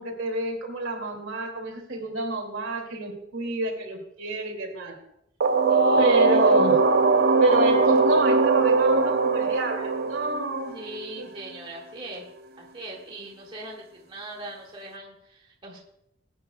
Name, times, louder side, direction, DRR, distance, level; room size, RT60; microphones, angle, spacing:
voice 1, 0.0-5.0 6.0-6.8 7.4-10.8 11.2-11.3, right 2 dB, 70° right, 2 dB, 2.4 m, -28 dB
sound 1, 5.4-11.1, right 3 dB, 50° right, 0.6 m, -21 dB
voice 2, 5.7-6.5 10.7-12.2 12.6-15.8, right 2 dB, 25° right, -3 dB, 1.8 m, -40 dB
20.0 x 9.2 x 2.3 m, 0.80 s
head